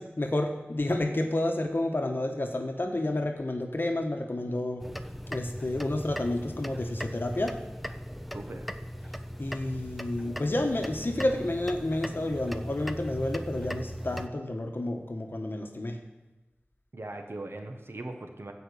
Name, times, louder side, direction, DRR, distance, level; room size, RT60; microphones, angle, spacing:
voice 1, 0.0-4.8 5.3-7.5 9.4-16.0, left 1 dB, 55° left, 3 dB, 1.3 m, -30 dB
sound 1, 4.8-14.3, equal, ahead, 0.6 m, -38 dB
voice 2, 8.3-8.7 16.9-18.5, right 2 dB, 70° right, 4 dB, 1.5 m, -39 dB
14.0 x 5.2 x 8.4 m, 1.1 s
wide cardioid pair, 55°, 4 cm